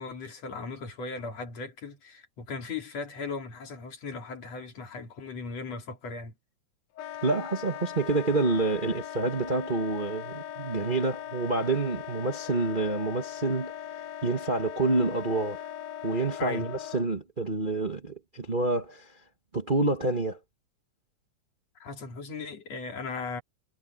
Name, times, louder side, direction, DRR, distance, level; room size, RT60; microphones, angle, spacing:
voice 1, 0.0-6.3 16.4-16.7 21.8-23.4, left 4 dB, 50° left, 3.9 m, -37 dB
Wind instrument woodwind instrument, 6.9-17.1, left 11 dB, 70° left, 1.6 m, -40 dB
voice 2, 7.2-13.7 14.2-15.7 16.0-19.1 19.5-20.4, right 3 dB, 65° right, 0.5 m, -28 dB
omnidirectional pair, 4.0 m